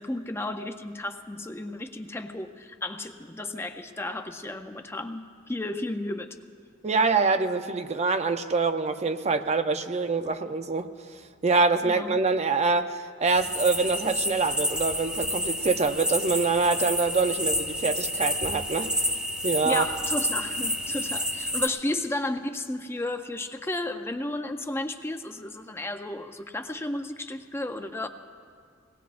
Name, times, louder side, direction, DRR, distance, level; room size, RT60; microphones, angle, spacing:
voice 1, 0.0-6.4 11.8-12.2 19.6-28.1, left 1 dB, 15° left, 6 dB, 0.5 m, -33 dB
voice 2, 6.8-10.9 11.4-18.9 19.4-19.9, right 4 dB, 35° right, 8 dB, 0.6 m, -25 dB
sound 1, 13.3-21.7, equal, 5° right, 1.1 m, -29 dB
23.0 x 18.5 x 2.5 m, 2.1 s
head